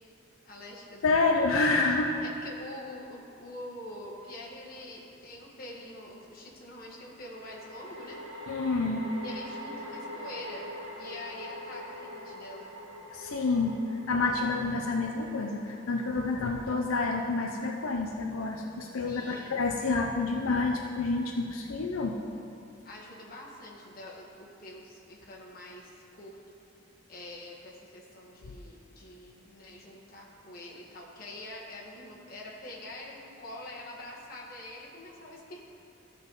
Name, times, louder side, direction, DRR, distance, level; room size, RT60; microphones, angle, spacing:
voice 1, 0.4-1.4 2.2-8.2 9.2-12.9 19.0-19.6 22.8-26.4 27.1-35.6, left 1 dB, 45° left, -4 dB, 1.5 m, -45 dB
voice 2, 1.0-2.1 8.5-9.1 13.1-13.8 14.1-22.2, left 3 dB, 85° left, 2 dB, 0.6 m, -28 dB
sound 1, 4.2-4.3 7.2-18.6, equal, 75° right, 1.8 m, -44 dB
14.5 x 5.4 x 4.1 m, 2.6 s
head